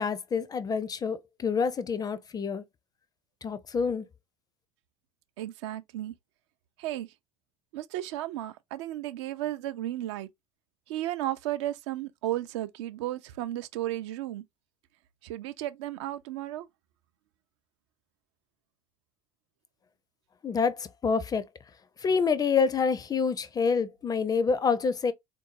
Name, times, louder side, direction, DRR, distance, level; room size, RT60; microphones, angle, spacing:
voice 1, 0.0-2.6 3.4-4.1 20.4-21.5 22.0-25.1, left 5 dB, 25° left, 0.4 m, -27 dB
voice 2, 5.4-6.1 6.8-7.1 7.7-10.3 10.9-14.4 15.2-16.7, right 14 dB, 60° right, 0.4 m, -34 dB
3.7 x 2.6 x 2.5 m
figure-of-eight pair, 65°, 17 cm